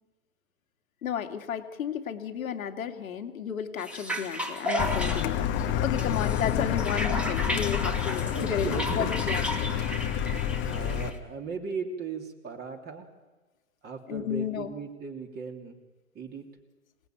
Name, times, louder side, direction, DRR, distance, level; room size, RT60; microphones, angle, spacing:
voice 1, 1.0-9.7 14.1-14.7, left 8 dB, 70° left, 5 dB, 2.5 m, -33 dB
sound 1, 3.8-11.2, equal, 5° right, 2.5 m, -34 dB
Car, 4.8-11.1, left 9 dB, 25° left, 1.3 m, -29 dB
voice 2, 8.3-9.1 9.6-9.7 10.7-13.1 13.8-15.8 16.1-16.5, right 4 dB, 25° right, 3 dB, 3.0 m, -37 dB
26.5 x 18.5 x 9.3 m, 1.2 s
hypercardioid pair, 125°, 42 cm